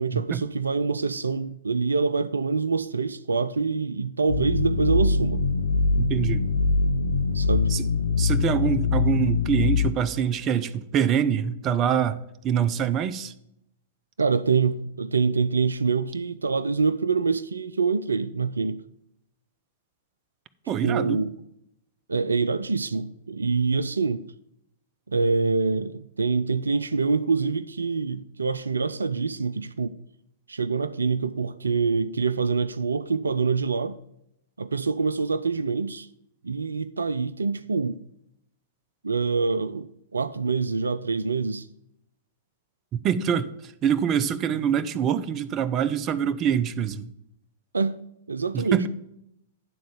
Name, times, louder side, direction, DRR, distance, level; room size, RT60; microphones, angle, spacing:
voice 1, 0.0-5.5 7.3-7.7 14.2-18.8 20.8-21.3 22.1-24.2 25.1-29.9 30.5-34.0 34.6-36.1 36.4-38.0 39.0-41.7 47.7-48.0 48.3-48.8, right 4 dB, 80° right, 0.3 m, -25 dB
sound 1, 4.3-9.9, left 4 dB, 80° left, 0.5 m, -23 dB
voice 2, 6.0-6.5 7.7-7.8 8.2-13.3 20.7-21.2 42.9-47.1 48.5-48.9, right 8 dB, 30° right, 0.6 m, -25 dB
10.0 x 3.8 x 7.0 m
figure-of-eight pair, 100°, 0 cm